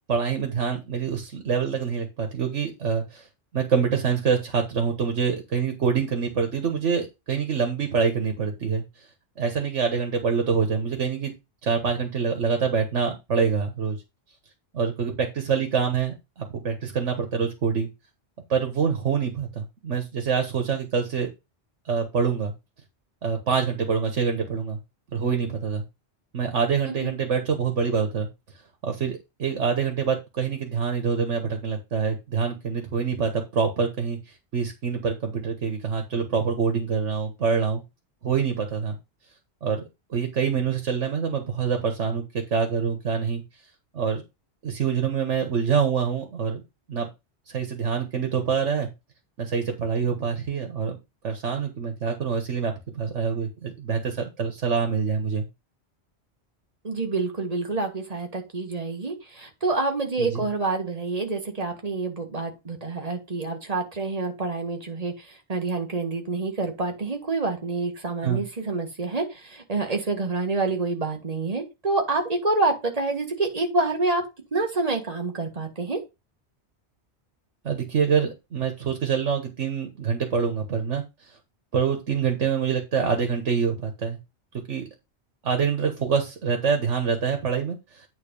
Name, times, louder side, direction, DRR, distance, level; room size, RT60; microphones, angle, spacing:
voice 1, 0.1-3.3 3.5-8.8 9.4-11.3 11.6-14.0 14.7-17.9 18.5-21.3 21.8-22.5 23.2-24.8 25.1-25.8 26.3-28.3 28.8-34.2 34.5-37.8 38.2-39.0 39.6-39.8 40.1-43.4 43.9-44.2 44.6-46.6 46.9-47.1 47.5-48.9 49.4-51.0 51.2-55.4 60.2-60.5 68.2-68.4 77.6-81.4 81.7-84.2 84.7-84.9 85.4-88.0, right 6 dB, 85° right, 5 dB, 1.6 m, -25 dB
voice 2, 56.8-74.2 74.5-76.0, right 3 dB, 35° right, 3 dB, 1.7 m, -27 dB
8.9 x 4.0 x 5.3 m, 0.25 s
omnidirectional pair, 1.2 m